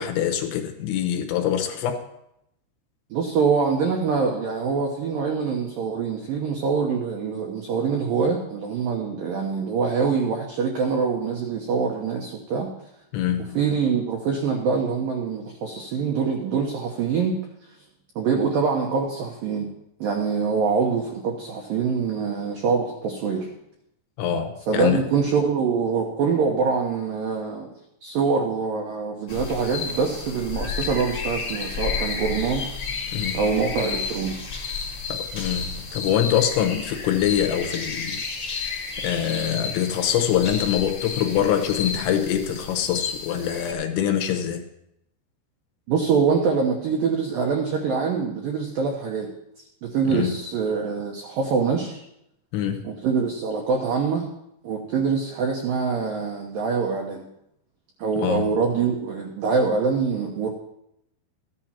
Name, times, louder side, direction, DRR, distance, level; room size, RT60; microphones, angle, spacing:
voice 1, 0.0-2.1 13.1-13.6 24.2-25.0 33.1-33.4 35.1-38.2 39.0-44.6 50.1-50.4 52.5-52.9 58.2-58.5, left 10 dB, 75° left, 3.1 m, -24 dB
voice 2, 3.1-12.7 13.5-17.4 18.2-19.7 20.0-23.5 24.7-27.7 28.0-32.7 33.3-34.4 45.9-49.3 49.8-52.0 52.8-54.3 54.6-57.3 58.0-60.5, right 5 dB, 80° right, 2.0 m, -24 dB
sound 1, 29.3-43.7, left 5 dB, 40° left, 1.6 m, -32 dB
14.0 x 11.0 x 4.4 m
omnidirectional pair, 5.8 m